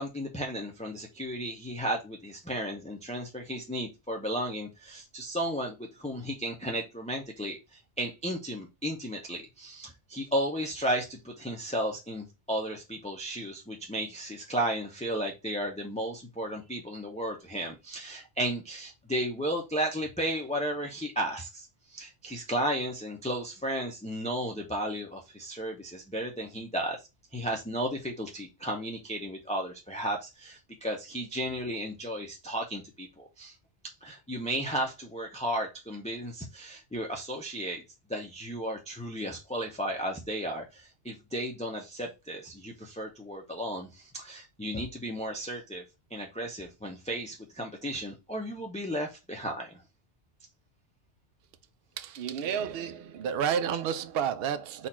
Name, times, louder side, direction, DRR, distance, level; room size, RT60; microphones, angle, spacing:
voice 1, 0.0-7.6 8.0-27.0 27.3-33.5 34.0-37.8 38.1-45.8 46.1-49.7, right 1 dB, 10° left, 0.5 m, -34 dB
voice 2, 52.0-54.9, right 8 dB, 65° right, 0.7 m, -31 dB
4.2 x 2.5 x 4.2 m
omnidirectional pair, 1.1 m